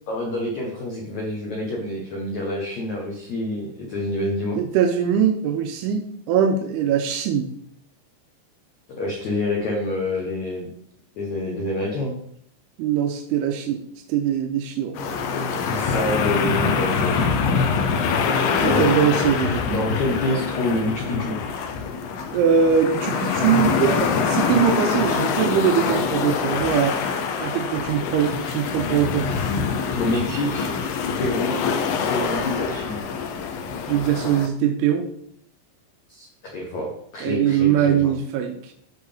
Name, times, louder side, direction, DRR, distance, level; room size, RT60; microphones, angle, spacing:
voice 1, 0.1-4.6 8.9-10.7 11.2-12.1 14.9-18.0 18.7-18.9 19.6-21.4 29.9-30.7 31.2-31.6 32.1-33.0 36.1-38.1, left 1 dB, 70° left, -2 dB, 1.7 m, -27 dB
voice 2, 4.5-7.5 12.8-13.8 14.1-15.0 18.6-19.7 22.3-29.3 33.9-35.1 37.2-38.7, right 8 dB, 80° right, 4 dB, 2.3 m, -22 dB
sound 1, 15.0-34.5, left 5 dB, 85° left, 2.0 m, -24 dB
13.0 x 4.4 x 3.5 m, 0.67 s
omnidirectional pair, 5.3 m